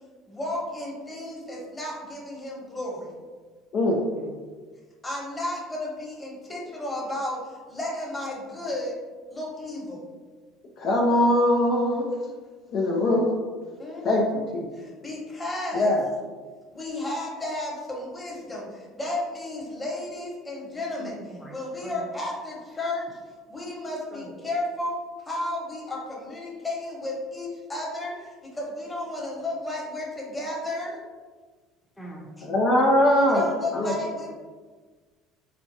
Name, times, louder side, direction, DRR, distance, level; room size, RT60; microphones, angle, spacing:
voice 1, 0.3-3.1 5.0-9.0 9.3-10.1 13.8-14.1 14.7-15.9 16.7-21.2 21.5-23.2 23.5-31.0 33.3-34.3, left 1 dB, 20° left, -3 dB, 1.2 m, -33 dB
voice 2, 3.9-4.4 21.0-21.5 21.8-22.1 24.1-24.3 32.0-32.5 33.7-34.0, equal, 5° left, -4 dB, 0.8 m, -42 dB
voice 3, 10.8-12.1 12.7-13.3 14.0-14.7 15.7-16.0 32.4-33.4 33.7-33.9, left 1 dB, 55° left, -1 dB, 0.5 m, -21 dB
4.2 x 2.3 x 2.7 m, 1.5 s
supercardioid pair, 80°, 0 cm